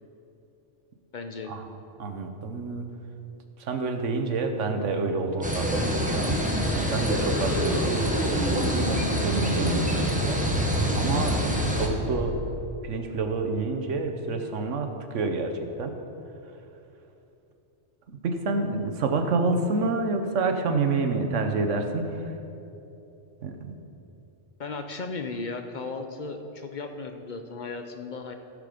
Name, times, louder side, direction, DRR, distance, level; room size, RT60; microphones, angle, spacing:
voice 1, 1.1-1.5 24.6-28.3, left 3 dB, 45° left, 6 dB, 0.7 m, -35 dB
voice 2, 2.0-2.9 3.6-6.4 6.9-10.4 10.9-11.4 11.7-12.4 12.8-15.9 18.2-22.4 23.4-23.7, right 3 dB, 85° right, 5 dB, 1.3 m, -28 dB
sound 1, 5.4-11.9, equal, 5° right, 1.0 m, -26 dB
sound 2, 5.6-12.6, right 1 dB, 70° left, 2.3 m, -33 dB
15.5 x 6.7 x 5.0 m, 2.9 s
omnidirectional pair, 1.2 m